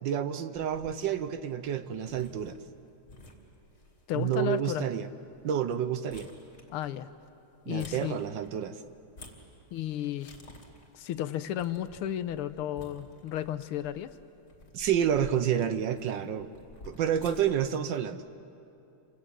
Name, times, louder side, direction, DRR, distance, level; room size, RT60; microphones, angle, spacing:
voice 1, 0.0-2.6 4.1-5.1 5.4-6.3 7.7-8.8 14.7-16.5 16.9-18.2, right 9 dB, 65° right, 11 dB, 1.4 m, -29 dB
sound 1, 0.5-17.7, left 2 dB, 35° left, 3.0 m, -54 dB
voice 2, 4.1-4.9 6.7-7.1 7.7-8.2 9.7-10.3 10.9-14.1, left 11 dB, 85° left, 13 dB, 1.7 m, -33 dB
29.5 x 26.5 x 7.7 m, 2.8 s
omnidirectional pair, 2.4 m